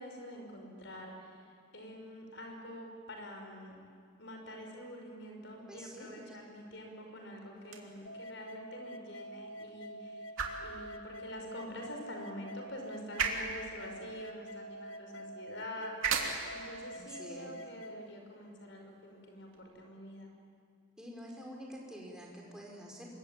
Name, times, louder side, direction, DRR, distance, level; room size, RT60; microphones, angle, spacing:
voice 1, 0.0-3.8 4.2-10.3 10.6-20.3, left 1 dB, 65° left, 2 dB, 5.6 m, -46 dB
voice 2, 5.7-6.4 16.9-17.5 21.0-23.1, equal, 5° right, -2 dB, 4.9 m, -47 dB
sound 1, 7.6-19.6, right 5 dB, 85° right, 3.1 m, -41 dB
sound 2, 8.1-18.1, right 1 dB, 80° left, 1.3 m, -47 dB
26.5 x 23.0 x 9.1 m, 2.2 s
head